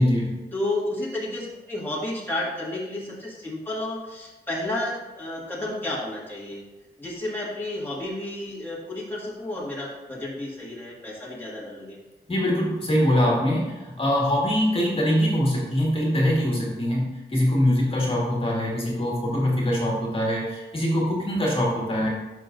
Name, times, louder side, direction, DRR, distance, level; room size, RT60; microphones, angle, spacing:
voice 1, 0.0-0.3 12.3-22.1, equal, 30° left, -3 dB, 1.9 m, -23 dB
voice 2, 0.5-6.6 7.0-12.0 19.0-19.1, left 1 dB, 10° left, -6 dB, 1.7 m, -31 dB
11.0 x 6.1 x 2.6 m, 1.1 s
wide cardioid pair, 120°, 18 cm